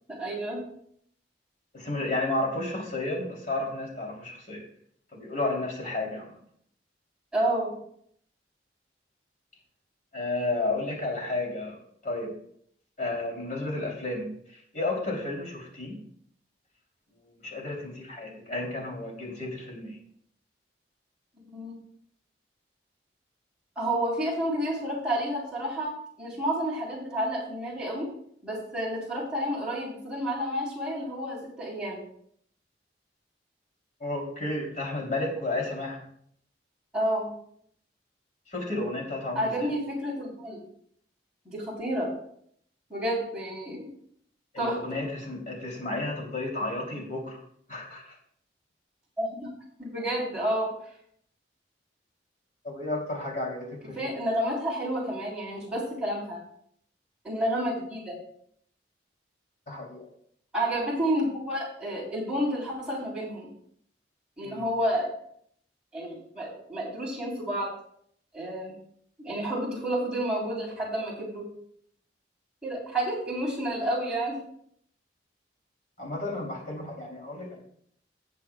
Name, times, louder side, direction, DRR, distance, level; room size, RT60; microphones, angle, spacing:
voice 1, 0.1-0.6 7.3-7.7 21.5-21.8 23.8-25.9 26.2-28.1 28.4-32.0 36.9-37.3 39.4-40.6 41.5-42.1 42.9-43.9 44.6-45.0 49.2-49.5 49.8-50.7 54.0-56.4 57.2-58.2 60.5-63.5 64.4-65.1 65.9-67.7 68.3-68.8 69.2-71.5 72.6-74.4, right 1 dB, 5° right, -6 dB, 3.7 m, -30 dB
voice 2, 1.7-4.6 5.1-6.4 10.1-11.8 12.0-12.3 13.0-16.0 17.1-20.0 34.0-36.0 38.5-39.7 44.5-47.4 47.7-48.2 52.6-54.1 59.7-60.1 64.4-64.7 76.0-77.6, left 2 dB, 45° left, -1 dB, 3.1 m, -32 dB
18.0 x 7.3 x 2.3 m, 0.66 s
head